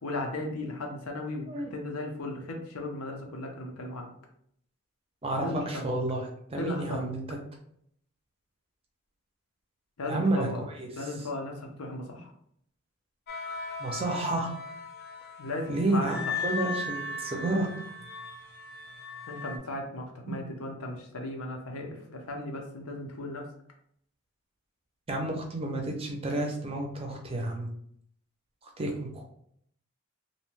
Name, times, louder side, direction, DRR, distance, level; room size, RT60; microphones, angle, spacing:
voice 1, 0.0-4.1 5.4-5.9 6.6-7.1 10.0-10.6 11.0-12.3 15.4-16.2 19.3-23.5, left 2 dB, 80° left, 2 dB, 0.7 m, -36 dB
voice 2, 5.2-7.4 10.1-10.5 10.8-10.9 13.8-14.5 15.7-17.7 20.3-20.4 25.1-27.7 28.8-29.2, right 2 dB, 25° right, 1 dB, 0.5 m, -30 dB
sound 1, 13.3-19.6, left 3 dB, 45° left, 0.3 m, -37 dB
2.7 x 2.2 x 3.1 m, 0.69 s
head